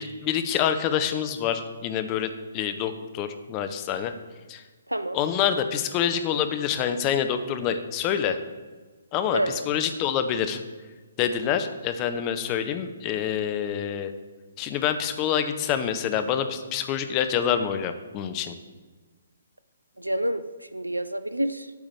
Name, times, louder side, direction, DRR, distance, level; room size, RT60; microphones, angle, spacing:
voice 1, 0.0-4.1 4.5-4.6 5.1-8.4 9.1-10.6 11.2-14.1 14.6-18.5, left 9 dB, 25° left, 9 dB, 0.8 m, -26 dB
voice 2, 4.9-5.2 9.3-9.8 20.0-21.7, right 1 dB, 90° right, 13 dB, 0.5 m, -28 dB
9.2 x 5.0 x 7.1 m, 1.4 s
figure-of-eight pair, 130°, 0 cm